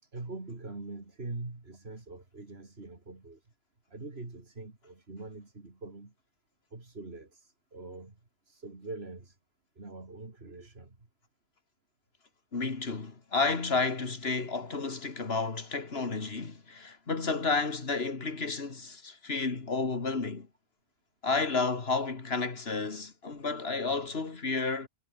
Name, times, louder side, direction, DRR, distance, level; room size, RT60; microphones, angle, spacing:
voice 1, 0.0-3.5 3.9-6.1 6.7-8.2 8.5-9.4 9.8-11.0, right 3 dB, 65° right, 3.5 m, -43 dB
voice 2, 12.5-20.5 21.2-24.9, left 4 dB, 65° left, 2.5 m, -31 dB
omnidirectional pair, 1.1 m